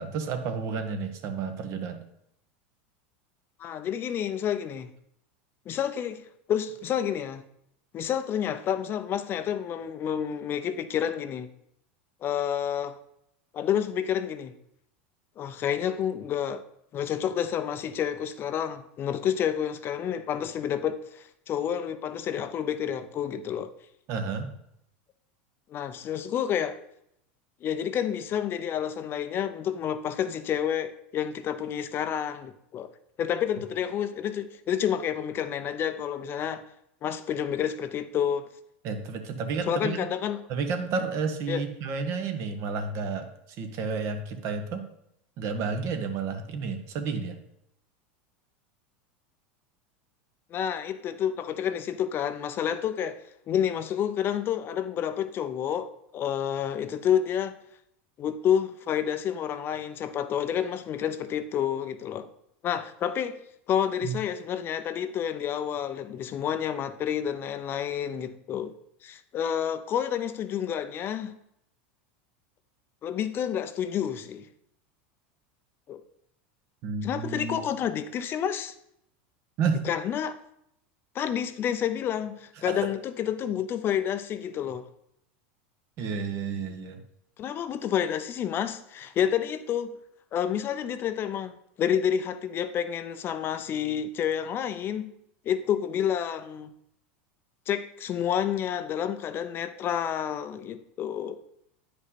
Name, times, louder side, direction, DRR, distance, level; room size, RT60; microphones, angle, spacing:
voice 1, 0.0-2.0 24.1-24.5 38.8-40.1 40.5-44.8 45.4-47.4 64.0-64.1 76.8-77.6 79.6-79.8 82.6-82.8 86.0-87.0, right 5 dB, 50° right, 1.3 m, -31 dB
voice 2, 3.6-4.9 5.7-7.4 7.9-11.5 12.2-13.0 13.5-14.5 15.4-16.6 16.9-23.7 25.7-26.8 27.6-32.9 33.2-36.6 37.0-38.5 39.7-40.4 41.5-41.6 50.5-53.2 53.5-57.5 58.2-62.3 62.6-63.4 63.7-68.7 69.0-71.3 73.0-74.5 75.9-76.0 77.0-78.7 79.8-80.4 81.1-84.9 87.4-90.0 90.3-91.5 91.8-95.1 95.5-96.7 97.7-101.4, left 9 dB, 35° left, 0.6 m, -29 dB
9.7 x 5.2 x 4.2 m
supercardioid pair, 115°, 6 cm